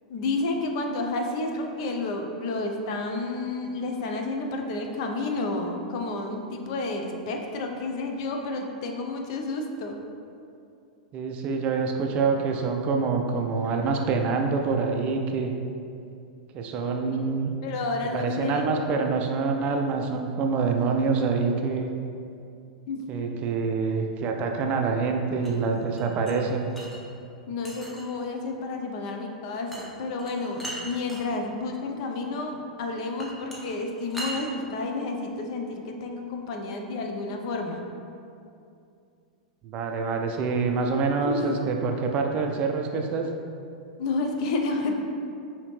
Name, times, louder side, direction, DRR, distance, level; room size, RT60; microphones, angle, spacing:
voice 1, 0.1-10.0 17.1-17.2 17.6-18.7 22.9-23.1 27.5-37.8 41.2-41.7 44.0-44.9, left 3 dB, 50° left, 3 dB, 0.5 m, -30 dB
voice 2, 11.1-15.5 16.5-17.5 18.1-21.9 23.1-26.7 39.6-43.3, right 4 dB, 35° right, 3 dB, 0.4 m, -26 dB
sound 1, 25.4-27.0 27.6-28.2 29.7-29.9 30.2-31.2 33.2-34.4, right 1 dB, 5° left, 0.7 m, -38 dB
4.9 x 2.8 x 3.1 m, 2.5 s
figure-of-eight pair, 95°, 4 cm